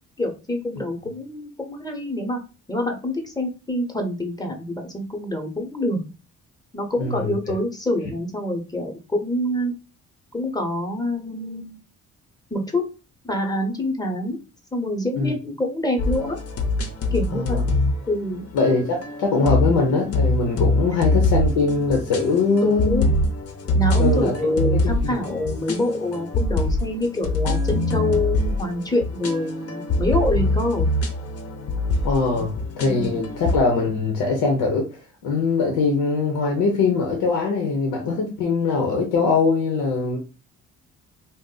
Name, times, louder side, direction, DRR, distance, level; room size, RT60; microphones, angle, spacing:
voice 1, 0.2-2.4 2.7-6.0 6.7-9.7 10.3-11.8 12.5-12.8 13.2-14.4 14.7-16.4 17.1-17.6 18.1-18.4 22.6-23.0 23.7-30.9 32.8-33.2, left 1 dB, 15° left, 0.8 m, -26 dB
voice 2, 7.0-7.4 15.2-15.3 17.3-17.7 18.5-23.2 24.0-24.3 24.7-25.1 32.0-34.9 35.2-40.2, left 4 dB, 90° left, 0.7 m, -22 dB
sound 1, 16.0-33.6, left 2 dB, 50° left, 0.7 m, -24 dB
2.5 x 2.1 x 3.8 m
cardioid pair, 90°, 30 cm